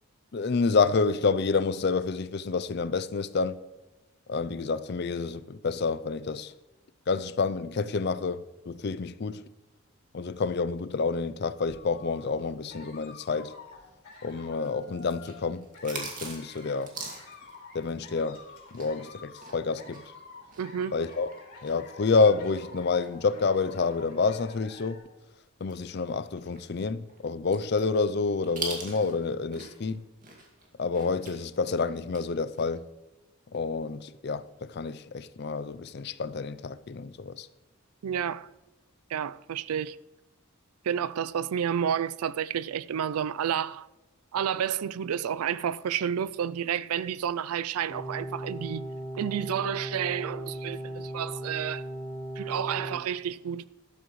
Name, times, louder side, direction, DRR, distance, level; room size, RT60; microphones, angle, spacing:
voice 1, 0.3-3.6 4.3-6.5 7.1-9.4 10.1-13.5 14.2-16.9 17.7-18.4 18.7-20.0 20.9-21.3 21.6-25.0 25.6-30.0 30.8-32.9 33.5-37.5, left 4 dB, 50° left, 0.4 m, -28 dB
sound 1, 11.6-25.0, left 3 dB, 75° left, 3.7 m, -49 dB
sound 2, 14.1-19.0 19.3-24.9 25.3-25.4 25.7-29.9 30.2-32.2 32.5-32.8, right 3 dB, 35° right, 2.2 m, -42 dB
voice 2, 20.6-20.9 38.0-38.5 39.1-40.0 40.8-43.9 44.3-48.9 49.1-51.9 52.4-53.7, right 8 dB, 85° right, 0.4 m, -30 dB
sound 3, 47.9-52.9, right 1 dB, 5° right, 2.6 m, -37 dB
14.0 x 12.0 x 3.1 m
head